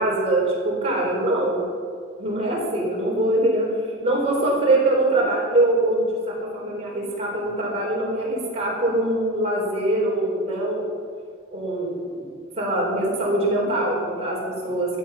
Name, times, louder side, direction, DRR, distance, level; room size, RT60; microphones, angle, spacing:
voice 1, 0.0-1.6 2.2-3.7 4.0-10.8 11.5-12.2 12.6-15.0, right 1 dB, 30° right, -4 dB, 4.5 m, -23 dB
15.5 x 11.0 x 6.0 m, 2.1 s
head